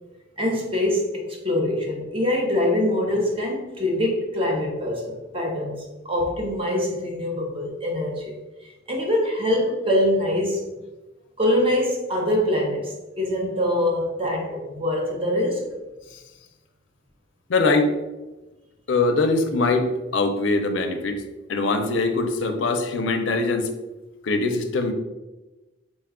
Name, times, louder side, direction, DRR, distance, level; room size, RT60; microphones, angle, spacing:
voice 1, 0.4-8.3 8.9-10.6 11.4-15.7, left 1 dB, 30° right, 0 dB, 0.8 m, -24 dB
voice 2, 17.5-17.9 18.9-21.2 21.5-23.7 24.2-24.9, left 3 dB, 70° left, 6 dB, 0.5 m, -22 dB
4.0 x 2.3 x 3.6 m, 1.1 s
head